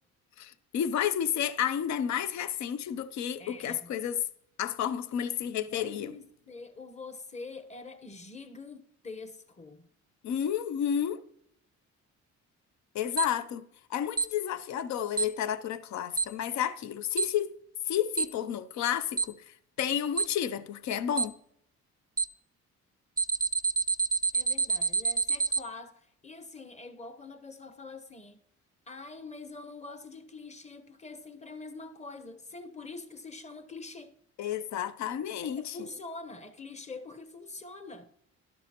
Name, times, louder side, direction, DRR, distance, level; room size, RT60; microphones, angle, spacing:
voice 1, 0.4-4.2 4.6-6.1 10.2-11.2 12.9-17.5 17.9-21.3 34.4-35.8, left 9 dB, 65° left, 0.6 m, -31 dB
voice 2, 3.4-3.9 5.6-9.9 24.3-28.4 28.9-34.2 35.0-35.1 35.4-38.1, left 3 dB, 20° left, 1.0 m, -45 dB
Alarm, 13.2-13.3 14.2-14.3 15.2-15.3 16.2-16.3 17.2-17.3 18.2-18.3 19.2-19.3 20.2-20.3 21.2-21.3 22.2-22.3 23.2-25.6, right 4 dB, 15° right, 0.4 m, -26 dB
12.5 x 11.5 x 2.9 m
cardioid pair, 90°, 30 cm